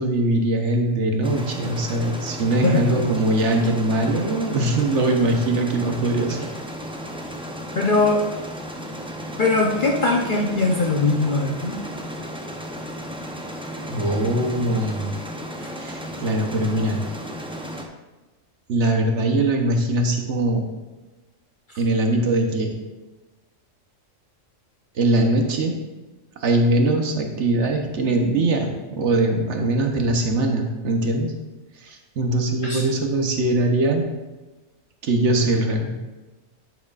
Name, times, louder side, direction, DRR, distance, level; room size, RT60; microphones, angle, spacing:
voice 1, 0.0-6.4 13.9-15.1 15.8-17.0 18.7-20.6 21.8-22.7 24.9-25.8 26.4-31.3 31.8-34.1 35.0-36.0, right 2 dB, 65° right, 3 dB, 1.2 m, -21 dB
sound 1, 1.2-17.9, equal, 5° right, 0.4 m, -34 dB
voice 2, 2.6-3.1 7.8-8.2 9.4-11.8 15.6-15.7 32.6-32.8, left 3 dB, 45° left, -1 dB, 0.8 m, -21 dB
10.5 x 6.1 x 2.4 m, 1.2 s
omnidirectional pair, 1.3 m